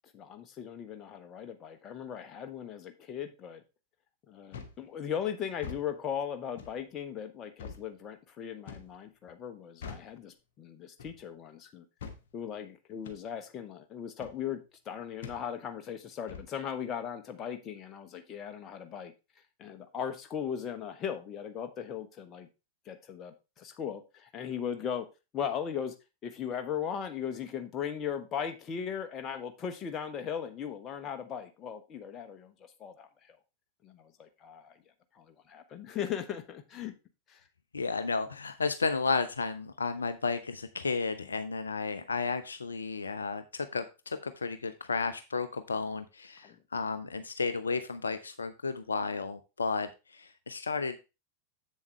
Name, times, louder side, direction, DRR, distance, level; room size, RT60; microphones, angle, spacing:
voice 1, 0.1-3.6 4.3-11.8 12.3-19.1 19.6-22.5 22.8-25.1 25.3-25.9 26.2-33.4 33.8-34.8 35.1-36.9 37.3-37.4 46.4-46.6, left 8 dB, 30° left, 7 dB, 1.2 m, -38 dB
sound 1, 4.5-4.8 5.5-5.9 6.6-6.8 7.6-7.8 8.7-8.9 9.8-10.1 11.0-11.2 12.0-12.2 13.0-13.2 14.2-14.4 15.2-15.4 16.3-16.5, left 5 dB, 55° left, 1.2 m, -44 dB
voice 2, 37.7-51.0, left 4 dB, 75° left, 11 dB, 0.6 m, -33 dB
7.6 x 7.1 x 3.3 m, 0.27 s
figure-of-eight pair, 90°, 0 cm